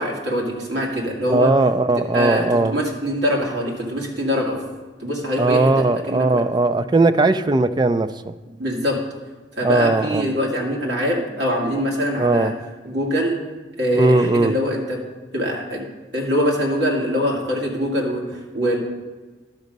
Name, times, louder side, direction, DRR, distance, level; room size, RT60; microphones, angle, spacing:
voice 1, 0.0-1.5 2.1-4.6 5.0-5.7 6.1-6.4 8.6-9.0 9.6-12.5 12.8-13.4 13.8-15.0 15.3-18.8, equal, 65° right, -2 dB, 2.3 m, -23 dB
voice 2, 1.3-2.7 5.4-8.3 9.6-10.3 12.2-12.5 13.9-14.5, right 2 dB, 25° right, 11 dB, 0.3 m, -18 dB
12.0 x 6.2 x 5.3 m, 1.3 s
head